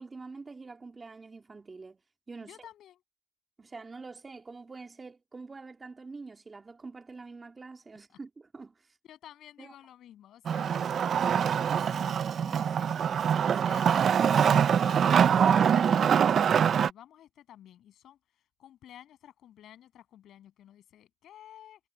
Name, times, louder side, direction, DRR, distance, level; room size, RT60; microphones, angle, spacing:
voice 1, 0.0-2.0 2.3-2.6 3.6-8.7 9.6-9.7, right 4 dB, 30° right, 2.5 m, -45 dB
voice 2, 2.4-3.0 9.1-12.9 13.4-18.2 18.6-21.8, left 11 dB, 75° left, 7.8 m, -52 dB
Wood, 10.4-16.9, right 8 dB, 55° right, 0.5 m, -24 dB
cardioid pair, 90°, 0 cm